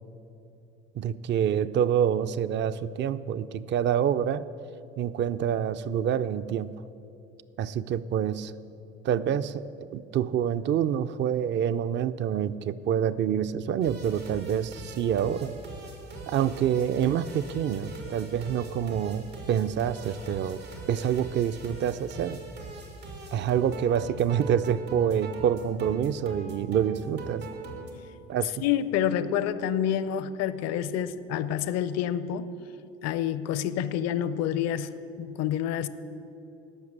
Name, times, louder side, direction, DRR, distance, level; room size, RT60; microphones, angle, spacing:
voice 1, 1.0-4.5 5.0-6.8 7.6-8.5 9.0-15.6 16.3-20.6 20.9-22.4 23.3-27.5 28.3-28.6, right 9 dB, 40° right, 14 dB, 0.4 m, -27 dB
sound 1, 13.8-27.9, right 3 dB, 90° right, 1.8 m, -41 dB
voice 2, 28.6-32.5 33.0-35.9, left 9 dB, 60° left, 15 dB, 0.6 m, -28 dB
14.0 x 6.0 x 7.3 m, 2.9 s
hypercardioid pair, 60°, 30 cm